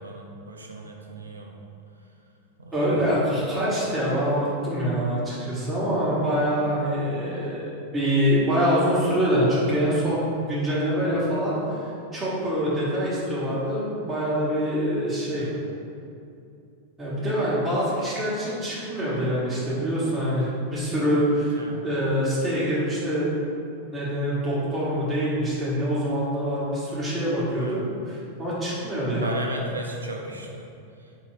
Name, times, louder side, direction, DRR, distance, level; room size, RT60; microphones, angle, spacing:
voice 1, 0.0-1.6 2.6-2.9 15.3-15.5 21.6-21.8 27.6-27.8 29.2-30.7, right 2 dB, 75° right, 1 dB, 0.5 m, -36 dB
voice 2, 2.7-15.5 17.0-21.6 21.8-23.3 23.9-27.8 28.1-29.4, equal, 10° right, -10 dB, 1.3 m, -25 dB
4.5 x 3.1 x 3.2 m, 2.7 s
figure-of-eight pair, 90°, 0 cm